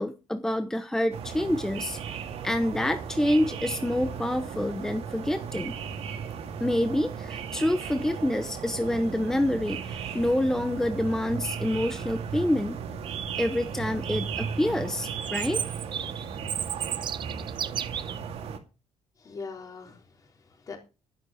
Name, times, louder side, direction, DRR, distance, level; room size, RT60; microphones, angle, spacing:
voice 1, 0.0-2.0 2.4-5.8 6.6-12.8 13.4-15.6, left 1 dB, 5° left, 0.8 m, -27 dB
sound 1, 1.1-18.6, right 7 dB, 60° right, 2.2 m, -36 dB
Chirp tweet, 15.2-18.2, right 8 dB, 45° right, 0.7 m, -33 dB
voice 2, 19.2-20.8, left 4 dB, 30° left, 3.7 m, -42 dB
11.5 x 11.0 x 5.0 m
cardioid pair, 155°, 11 cm